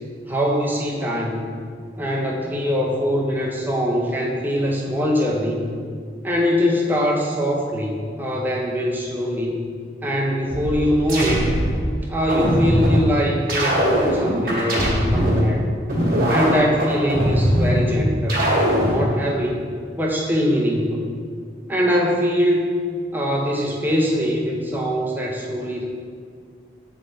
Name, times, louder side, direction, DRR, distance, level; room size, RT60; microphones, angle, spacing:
voice 1, 0.3-1.5 2.0-5.7 6.2-9.6 10.0-11.5 12.1-15.6 16.3-18.5 18.9-19.7 20.0-21.1 21.7-22.6 23.1-25.8, equal, 10° right, -3 dB, 0.6 m, -22 dB
sound 1, 10.5-11.8 12.3-13.0 13.5-15.4 15.9-17.8 18.3-19.0, equal, 55° right, 1.4 m, -20 dB
6.7 x 3.5 x 3.9 m, 2.1 s
head